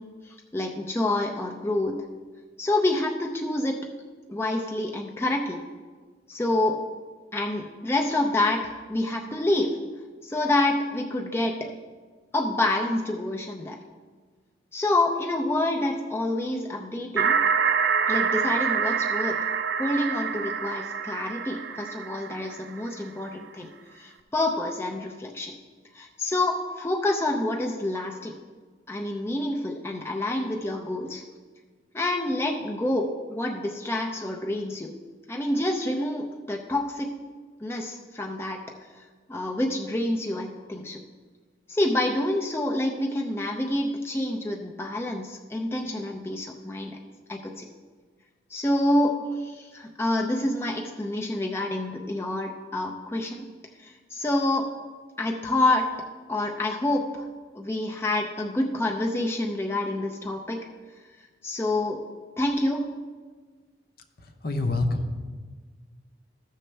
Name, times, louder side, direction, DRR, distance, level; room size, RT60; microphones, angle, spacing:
voice 1, 0.0-2.1 2.6-3.9 4.3-5.6 6.3-6.8 7.3-9.8 10.2-11.7 12.3-13.8 14.7-17.4 18.1-19.5 19.8-25.6 25.9-28.3 28.9-31.2 31.9-35.0 35.3-37.1 37.6-38.7 39.3-41.0 41.7-47.0 47.3-47.7 48.5-53.5 53.8-54.7 55.2-55.9 56.3-57.3 57.5-60.7 61.4-62.0 62.4-62.9, left 1 dB, 15° left, 1 dB, 0.5 m, -27 dB
sound 1, 17.2-22.9, right 6 dB, 80° right, 0.5 m, -26 dB
voice 2, 64.2-65.2, left 2 dB, 55° left, 5 dB, 0.8 m, -27 dB
14.5 x 6.4 x 3.3 m, 1.5 s
head